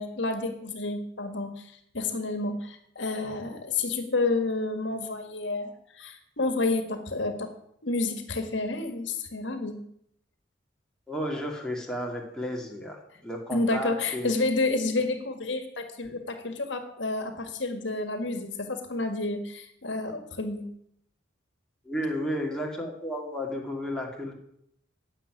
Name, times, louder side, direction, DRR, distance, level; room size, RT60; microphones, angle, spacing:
voice 1, 0.0-7.5 7.8-9.8 13.5-20.7, left 3 dB, 70° left, 7 dB, 1.8 m, -30 dB
voice 2, 11.1-14.3 21.8-24.3, equal, 5° left, -1 dB, 2.5 m, -33 dB
10.5 x 7.9 x 9.8 m, 0.73 s
head